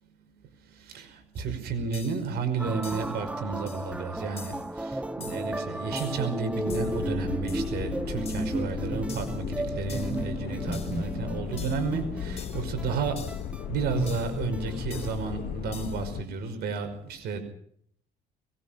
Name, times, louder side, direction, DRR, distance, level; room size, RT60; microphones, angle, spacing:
voice 1, 0.9-13.2 13.7-17.4, right 5 dB, 70° right, 7 dB, 5.4 m, -32 dB
sound 1, 1.3-1.4 1.9-2.3 2.8-3.2 3.7-3.9 4.4-4.7 5.2-5.5 6.0-6.3 6.7-7.0 7.5-7.7 8.3-8.6 9.1-9.4 9.9-10.2 10.7-11.0 11.6-11.9 12.4-12.7 13.2-13.5 14.1-14.4 14.9-15.2 15.7-16.1, left 6 dB, 35° left, 5.4 m, -46 dB
sound 2, 2.6-15.2, right 1 dB, 5° right, 0.9 m, -34 dB
sound 3, 6.7-16.2, left 11 dB, 60° left, 1.0 m, -36 dB
22.5 x 21.5 x 5.9 m, 0.64 s
cardioid pair, 110°, 17 cm